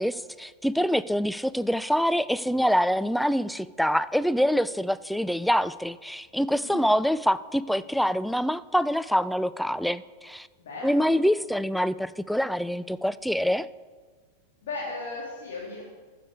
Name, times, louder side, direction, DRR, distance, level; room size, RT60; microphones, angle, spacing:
voice 1, 0.0-10.5 10.8-13.7, equal, ahead, 16 dB, 0.3 m, -25 dB
voice 2, 6.6-6.9 10.6-11.1 14.6-15.8, left 3 dB, 60° left, -5 dB, 2.8 m, -36 dB
14.0 x 6.8 x 4.8 m, 1.5 s
figure-of-eight pair, 90°, 0 cm